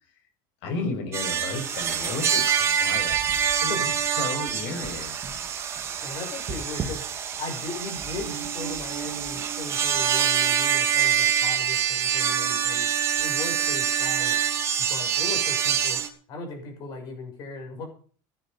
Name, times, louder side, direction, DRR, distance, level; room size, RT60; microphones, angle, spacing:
voice 1, 0.6-5.2, left 3 dB, 65° left, 6 dB, 6.0 m, -34 dB
sound 1, 1.1-16.1, right 8 dB, 25° right, 2.4 m, -25 dB
voice 2, 6.0-7.1 7.4-12.9 13.2-14.4 14.8-16.0 16.3-17.9, left 3 dB, 45° left, 4 dB, 6.9 m, -37 dB
16.0 x 11.5 x 5.4 m, 0.43 s
cardioid pair, 170°, 10 cm